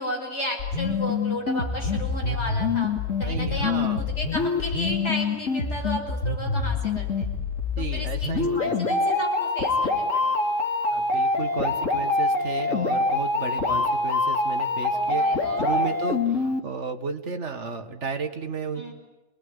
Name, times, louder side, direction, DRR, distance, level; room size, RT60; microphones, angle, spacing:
voice 1, 0.0-2.9 3.2-7.3 7.9-8.3 8.5-10.4 13.5-13.9 14.9-15.9 18.8-18.9, equal, 60° left, 1 dB, 6.2 m, -33 dB
sound 1, 0.6-16.6, left 3 dB, 85° left, 2.8 m, -25 dB
voice 2, 3.2-4.0 7.8-8.7 10.9-18.9, right 4 dB, 65° right, 6 dB, 2.1 m, -33 dB
26.0 x 19.5 x 9.9 m, 1.1 s
omnidirectional pair, 1.3 m